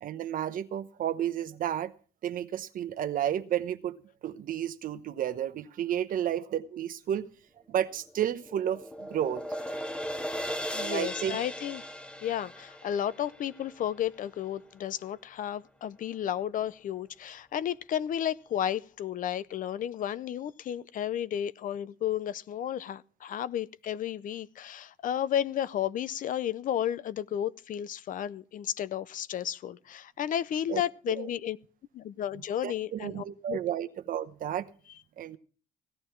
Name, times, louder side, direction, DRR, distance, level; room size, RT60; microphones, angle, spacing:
voice 1, 0.0-1.9 2.2-4.0 4.2-7.2 7.7-9.4 10.8-11.4 30.7-30.8 31.2-31.3 32.6-34.7 35.2-35.4, right 10 dB, 55° right, 0.9 m, -32 dB
sound 1, 7.9-14.3, equal, 5° left, 0.8 m, -38 dB
voice 2, 10.7-11.8 12.2-31.6 31.9-33.6, left 10 dB, 50° left, 0.6 m, -33 dB
17.0 x 11.5 x 4.5 m
cardioid pair, 110°, 17 cm